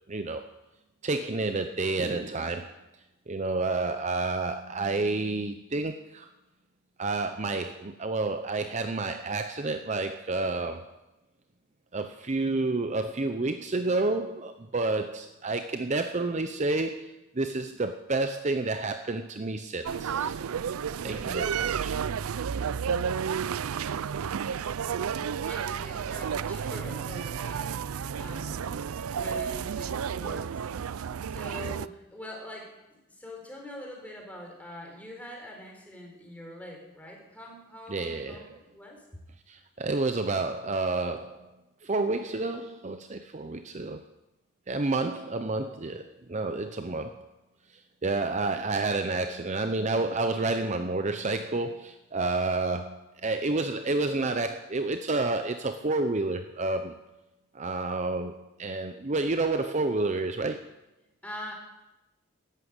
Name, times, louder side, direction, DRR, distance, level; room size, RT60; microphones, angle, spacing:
voice 1, 0.1-0.4 1.0-2.7 3.3-6.3 7.0-10.9 11.9-20.3 21.0-21.9 37.9-38.6 39.5-41.5 41.8-44.0 44.7-46.0 46.3-47.3 48.0-56.9 57.5-60.7, right 3 dB, 35° right, 8 dB, 0.6 m, -30 dB
sound 1, 19.9-31.9, right 7 dB, 80° right, 0.4 m, -31 dB
voice 2, 25.1-27.9 28.2-28.7 29.1-30.5 31.3-39.0 61.2-61.5, equal, 5° left, 0 dB, 3.8 m, -44 dB
13.5 x 11.5 x 8.2 m, 0.98 s
head